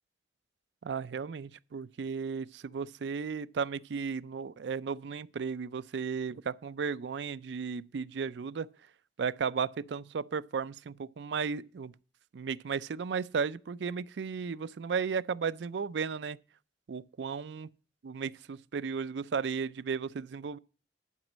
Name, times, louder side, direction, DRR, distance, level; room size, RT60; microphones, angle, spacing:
voice 1, 0.8-8.7 9.2-11.9 12.3-16.4 16.9-17.7 18.0-20.6, right 6 dB, 75° right, 0.4 m, -35 dB
11.0 x 5.2 x 7.2 m
head